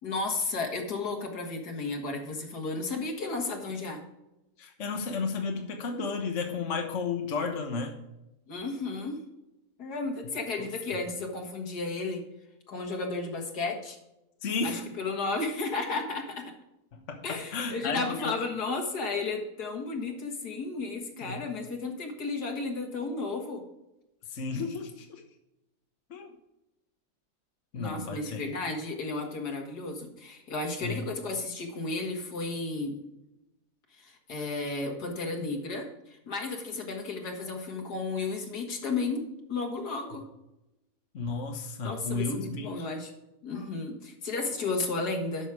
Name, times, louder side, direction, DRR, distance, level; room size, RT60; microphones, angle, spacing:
voice 1, 0.0-4.0 8.5-9.2 9.8-12.2 12.7-14.0 14.6-16.5 17.2-23.6 27.7-33.0 34.0-39.2 39.5-40.3 41.8-43.1 43.4-45.5, left 3 dB, 80° left, 2 dB, 2.3 m, -33 dB
voice 2, 4.6-7.9 14.4-14.8 17.1-18.4 21.2-21.4 24.3-25.2 26.1-26.3 27.7-28.5 30.8-31.0 41.1-42.9, left 4 dB, 50° left, 3 dB, 1.5 m, -33 dB
11.0 x 6.5 x 4.8 m, 0.92 s
omnidirectional pair, 1.7 m